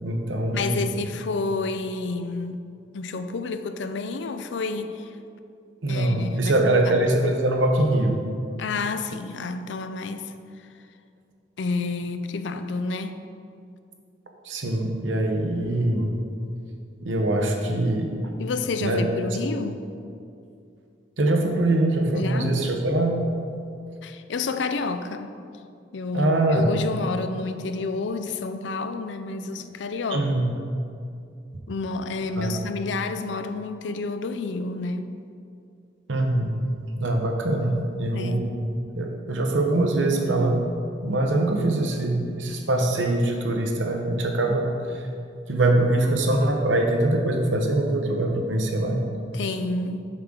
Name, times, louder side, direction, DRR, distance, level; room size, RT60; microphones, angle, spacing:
voice 1, 0.0-0.8 5.8-8.2 14.4-16.1 17.0-18.1 18.8-19.1 21.2-23.2 26.1-26.7 30.1-30.5 32.4-32.6 36.1-36.6 37.0-38.7 38.9-40.7 41.0-45.1 45.5-49.0, right 1 dB, 85° right, 2 dB, 0.9 m, -23 dB
voice 2, 0.5-2.6 2.9-5.1 5.9-6.9 8.6-10.3 11.6-13.2 18.4-19.8 22.1-22.6 24.0-25.3 25.9-30.5 31.7-35.1 38.1-38.5 49.3-50.1, left 3 dB, 75° left, 9 dB, 0.4 m, -30 dB
7.4 x 3.8 x 6.3 m, 2.5 s
head